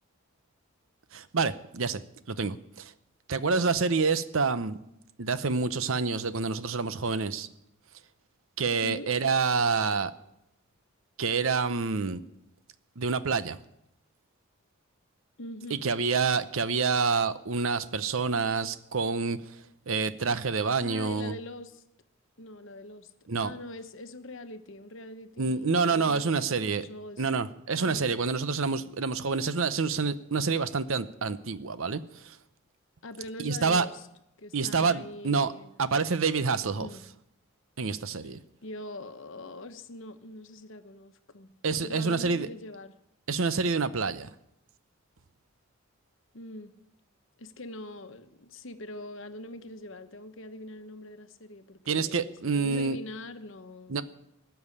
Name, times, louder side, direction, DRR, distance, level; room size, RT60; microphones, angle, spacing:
voice 1, 1.1-2.0 2.3-2.9 3.3-4.8 5.2-7.5 8.6-10.1 11.2-12.2 13.0-13.6 15.7-19.4 19.9-21.3 23.3-23.5 25.4-26.9 27.2-32.4 33.4-33.9 34.5-35.5 35.8-36.9 37.8-38.4 41.6-42.5 43.3-44.3 51.9-53.0 53.9-54.0, right 4 dB, 70° right, 14 dB, 0.8 m, -27 dB
voice 2, 15.4-15.9 20.8-21.8 22.4-27.3 27.8-28.1 33.0-34.1 34.4-35.7 36.7-37.0 38.6-41.5 41.8-42.9 46.3-46.7 47.4-54.0, left 1 dB, 60° left, 9 dB, 1.1 m, -43 dB
18.5 x 7.1 x 9.8 m, 0.82 s
head